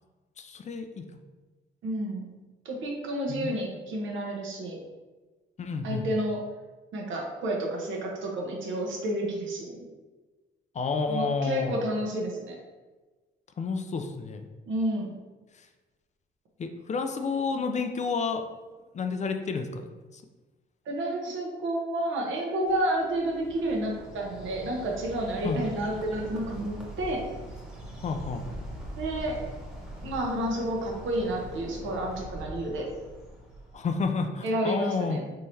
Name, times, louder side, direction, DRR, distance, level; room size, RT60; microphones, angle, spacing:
voice 1, 0.4-1.0 3.3-3.5 5.6-6.1 10.7-11.8 13.6-14.5 15.5-15.7 16.6-18.4 18.9-19.9 20.1-20.2 25.4-25.6 28.0-28.4 33.7-35.2, left 4 dB, 35° left, 6 dB, 0.4 m, -30 dB
voice 2, 1.8-2.3 2.6-4.8 5.8-6.4 6.9-9.8 11.1-12.5 14.7-15.1 20.9-27.2 29.0-29.4 30.0-32.9 34.4-35.2, right 1 dB, 75° right, -1 dB, 0.9 m, -30 dB
Bird, 22.7-34.1, right 1 dB, 5° right, 1.0 m, -42 dB
3.8 x 3.0 x 2.7 m, 1.3 s
cardioid pair, 90°, 20 cm